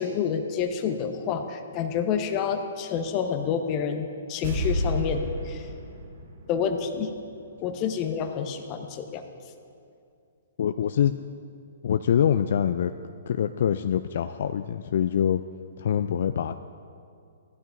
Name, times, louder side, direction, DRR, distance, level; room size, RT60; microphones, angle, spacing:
voice 1, 0.0-5.7 6.5-7.1 7.6-9.2, left 7 dB, 35° left, 5 dB, 1.0 m, -28 dB
sound 1, 4.4-7.6 7.9-8.0, right 1 dB, 55° right, 2.2 m, -32 dB
voice 2, 10.6-11.2 11.8-12.9 13.3-15.4 15.8-16.6, left 9 dB, 60° left, 9 dB, 0.3 m, -24 dB
15.5 x 12.0 x 2.6 m, 2.4 s
hypercardioid pair, 130°, 0 cm